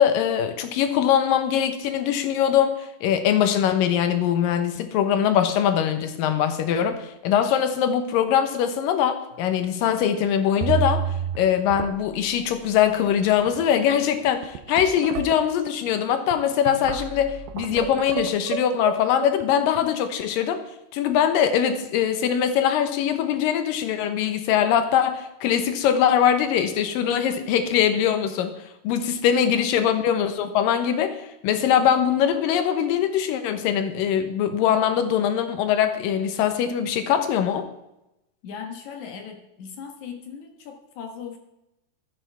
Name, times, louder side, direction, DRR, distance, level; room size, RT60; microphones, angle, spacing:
voice 1, 0.0-11.0 11.4-20.6 20.9-28.6 28.8-37.7, left 9 dB, 85° left, 8 dB, 2.7 m, -22 dB
sound 1, 9.3-9.7 10.0-10.1 10.6-11.4 11.7-12.3 13.0-13.1 13.4-13.7 14.3-19.8, right 9 dB, 80° right, 2.4 m, -30 dB
voice 2, 38.4-41.4, left 7 dB, 65° left, 4 dB, 2.6 m, -38 dB
14.0 x 13.5 x 3.5 m, 0.91 s
omnidirectional pair, 3.9 m